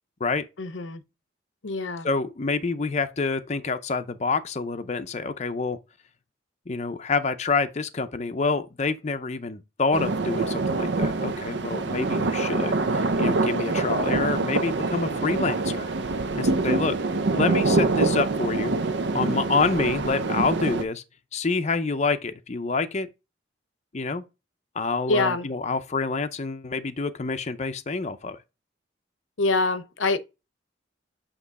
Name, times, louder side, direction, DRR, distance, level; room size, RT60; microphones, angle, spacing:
voice 1, 0.6-1.0 1.6-2.1 25.1-25.5 29.4-30.2, left 3 dB, 80° left, 0.8 m, -25 dB
voice 2, 2.0-5.8 6.7-15.9 16.4-17.0 17.3-18.7 19.1-21.0 21.3-23.1 23.9-24.2 24.7-28.4, left 4 dB, 35° left, 0.5 m, -27 dB
sound 1, 9.9-20.8, right 3 dB, 60° right, 0.6 m, -25 dB
8.3 x 3.0 x 4.1 m
head